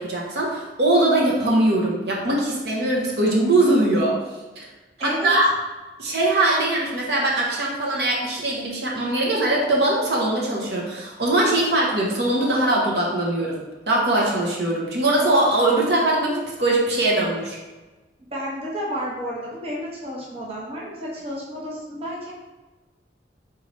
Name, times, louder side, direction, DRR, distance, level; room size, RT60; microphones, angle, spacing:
voice 1, 0.0-4.2 4.6-4.7 5.0-5.5 6.0-13.6 13.9-17.6, right 1 dB, 70° right, -3 dB, 0.9 m, -21 dB
voice 2, 5.0-5.4 18.3-22.3, equal, 35° right, -5 dB, 0.9 m, -31 dB
4.2 x 3.8 x 3.1 m, 1.2 s
head